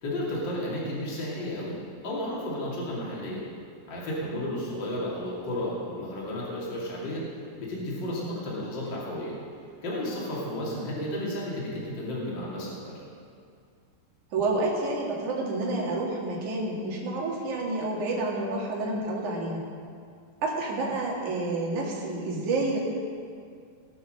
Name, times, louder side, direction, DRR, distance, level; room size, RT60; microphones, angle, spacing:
voice 1, 0.0-3.4 3.9-7.2 7.6-9.3 9.8-13.0, left 1 dB, 35° left, -5 dB, 3.0 m, -33 dB
voice 2, 14.3-19.6 20.4-22.8, right 2 dB, 60° right, -3 dB, 3.4 m, -29 dB
19.5 x 6.5 x 6.5 m, 2.3 s
omnidirectional pair, 4.1 m